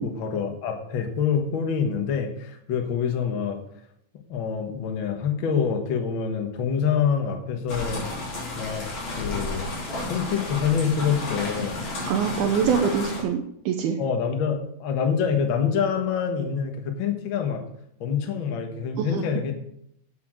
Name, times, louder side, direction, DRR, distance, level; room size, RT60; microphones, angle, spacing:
voice 1, 0.0-3.6 4.3-8.0 8.6-8.9 9.2-9.8 10.1-11.8 14.0-17.6 18.0-19.5, left 7 dB, 80° left, 4 dB, 1.1 m, -26 dB
sound 1, 7.7-13.2, left 2 dB, 50° left, 5.6 m, -32 dB
voice 2, 12.1-14.0 19.0-19.2, right 7 dB, 80° right, 3 dB, 2.6 m, -24 dB
9.9 x 6.9 x 6.5 m, 0.74 s
omnidirectional pair, 4.4 m